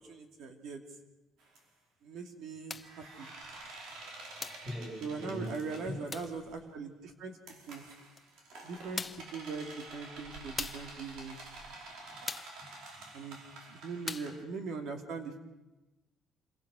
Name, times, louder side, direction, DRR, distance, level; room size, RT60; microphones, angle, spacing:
voice 1, 0.1-0.8 2.0-3.3 5.0-7.4 7.7-7.8 8.6-9.0 9.3-11.4 13.1-13.4 13.7-15.4, right 4 dB, 65° right, 5 dB, 2.6 m, -40 dB
sound 1, 1.4-1.6 2.8-6.6 7.5-14.4, right 2 dB, 80° right, 4.7 m, -49 dB
sound 2, 2.7-3.0 4.4-4.7 6.1-6.4 8.2-8.3 9.0-9.3 10.6-10.9 12.3-12.6 14.1-14.4, left 4 dB, 20° left, 0.9 m, -40 dB
voice 2, 4.6-6.0 11.8-12.2 12.6-13.3, left 1 dB, 10° right, -3 dB, 4.9 m, -43 dB
27.5 x 22.5 x 6.2 m, 1.1 s
cardioid pair, 150°, 0 cm